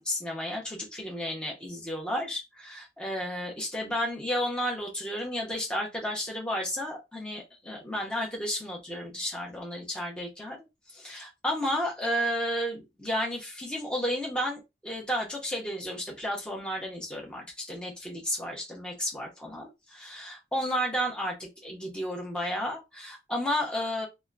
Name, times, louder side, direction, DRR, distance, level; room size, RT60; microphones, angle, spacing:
voice 1, 0.0-24.1, equal, 5° left, 0.7 m, -32 dB
2.8 x 2.1 x 2.3 m
head